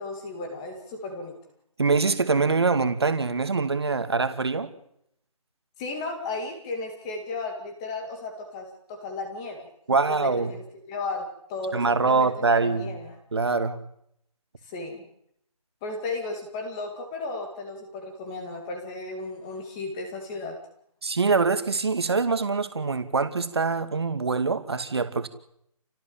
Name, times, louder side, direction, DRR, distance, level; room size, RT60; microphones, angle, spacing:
voice 1, 0.0-1.4 5.8-9.7 10.1-12.3 12.6-13.2 14.7-15.1 15.8-20.6, left 3 dB, 10° left, 4 dB, 2.1 m, -35 dB
voice 2, 1.8-4.7 9.9-10.5 11.7-12.9 13.3-13.8 21.0-25.3, right 4 dB, 40° right, 9 dB, 2.5 m, -24 dB
29.0 x 18.0 x 8.8 m, 0.74 s
figure-of-eight pair, 175°, 19 cm